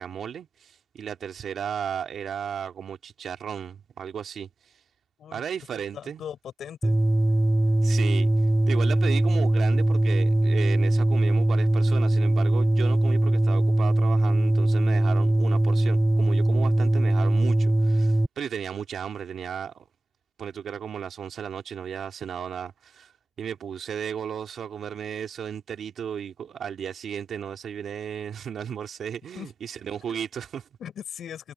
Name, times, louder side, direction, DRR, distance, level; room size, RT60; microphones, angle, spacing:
voice 1, 0.0-4.5 5.3-6.2 7.8-8.3 8.7-19.8 20.4-23.1 23.4-30.7, right 8 dB, 60° right, 3.0 m, -35 dB
voice 2, 5.9-7.0 29.3-29.5 30.1-30.2 30.8-31.5, left 9 dB, 65° left, 7.3 m, -39 dB
sound 1, 6.8-18.3, right 1 dB, 10° right, 0.8 m, -21 dB
cardioid pair, 90°, 0 cm